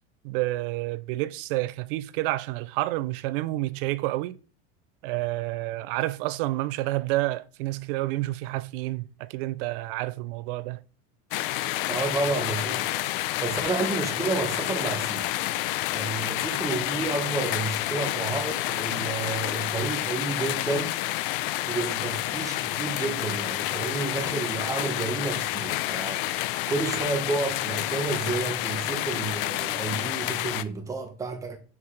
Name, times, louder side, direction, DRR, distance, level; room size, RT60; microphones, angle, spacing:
voice 1, 0.2-4.4 5.0-10.8, right 18 dB, 60° right, 0.4 m, -29 dB
sound 1, 11.3-30.6, left 16 dB, 60° left, 0.5 m, -29 dB
voice 2, 11.9-12.9 13.4-15.3 15.9-21.0 21.7-26.3 26.7-31.6, right 3 dB, 10° right, 0.8 m, -30 dB
5.9 x 5.7 x 3.2 m
supercardioid pair, 165°, 31 cm